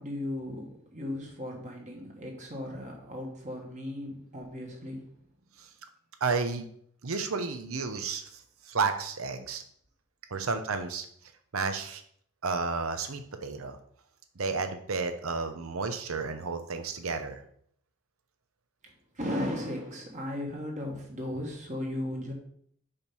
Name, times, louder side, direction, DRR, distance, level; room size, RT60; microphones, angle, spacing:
voice 1, 0.0-5.1 10.3-10.5 19.1-22.3, left 1 dB, 35° right, 0 dB, 1.5 m, -36 dB
voice 2, 6.2-6.7 7.0-8.4 8.7-9.6 10.3-11.1 11.5-12.0 12.4-13.8 14.4-17.4, right 4 dB, 85° right, 7 dB, 0.8 m, -32 dB
5.1 x 4.5 x 5.4 m, 0.64 s
head